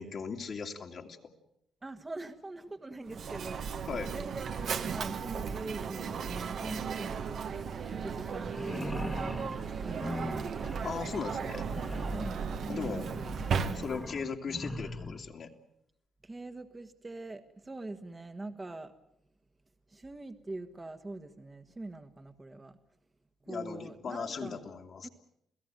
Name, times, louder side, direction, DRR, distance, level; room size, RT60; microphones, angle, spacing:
voice 1, 0.0-1.3 3.9-4.1 10.8-11.7 12.7-13.1 13.7-15.5 23.5-25.1, left 5 dB, 55° left, 1 dB, 2.6 m, -38 dB
voice 2, 1.8-7.5 7.9-8.6 9.0-9.4 9.8-10.5 12.1-13.3 13.6-13.9 16.2-18.9 19.9-22.8 23.5-24.6 25.0-25.1, right 2 dB, 20° right, 6 dB, 1.6 m, -43 dB
Mechanisms, 3.1-14.2, right 6 dB, 60° right, 1.6 m, -36 dB
sound 1, 6.2-12.9, right 4 dB, 35° right, 1.8 m, -48 dB
sound 2, 8.4-15.3, left 1 dB, 10° left, 1.6 m, -40 dB
28.5 x 17.0 x 9.2 m, 0.77 s
cardioid pair, 90°, 0 cm